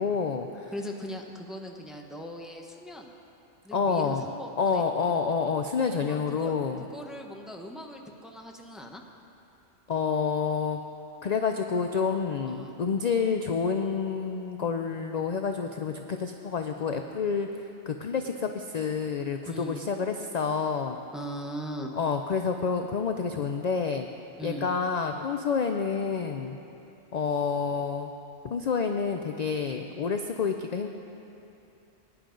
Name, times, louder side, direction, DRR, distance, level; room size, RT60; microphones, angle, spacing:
voice 1, 0.0-0.7 3.7-4.2 4.6-6.8 9.9-10.8 11.2-21.0 22.0-24.1 24.4-26.6 27.1-28.1 28.4-30.9, left 5 dB, 55° left, 5 dB, 0.5 m, -28 dB
voice 2, 0.7-3.1 3.6-4.8 5.9-9.0 12.4-12.7 19.5-19.8 21.1-22.0 24.4-24.7, equal, ahead, 1 dB, 0.7 m, -40 dB
20.0 x 10.5 x 3.9 m, 2.8 s
omnidirectional pair, 1.3 m